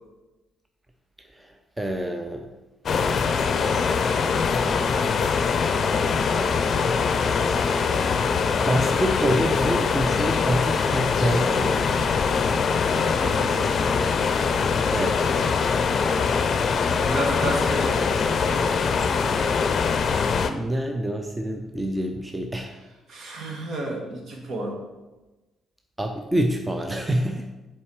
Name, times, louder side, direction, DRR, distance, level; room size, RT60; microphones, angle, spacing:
voice 1, 1.3-2.5 8.7-12.1 14.9-15.5 20.4-22.7 26.0-27.5, right 1 dB, 15° right, 4 dB, 0.7 m, -27 dB
sound 1, 2.9-20.5, left 5 dB, 50° left, 0.5 m, -23 dB
voice 2, 13.0-13.8 17.0-18.8 23.1-24.8, right 1 dB, 60° right, 0 dB, 1.7 m, -32 dB
7.1 x 4.7 x 4.7 m, 1.1 s
hypercardioid pair, 45°, 0 cm